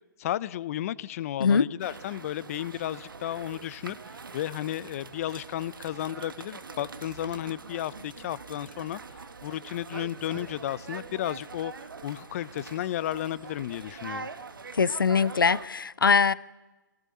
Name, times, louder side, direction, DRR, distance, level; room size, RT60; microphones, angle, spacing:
voice 1, 0.2-4.0 4.3-11.7 12.0-14.3, left 12 dB, 45° left, 19 dB, 0.8 m, -33 dB
sound 1, 1.8-15.7, right 4 dB, 80° right, 1.6 m, -43 dB
voice 2, 14.7-16.3, left 5 dB, 85° left, 19 dB, 0.8 m, -22 dB
23.0 x 18.5 x 9.6 m, 1.2 s
hypercardioid pair, 130°, 11 cm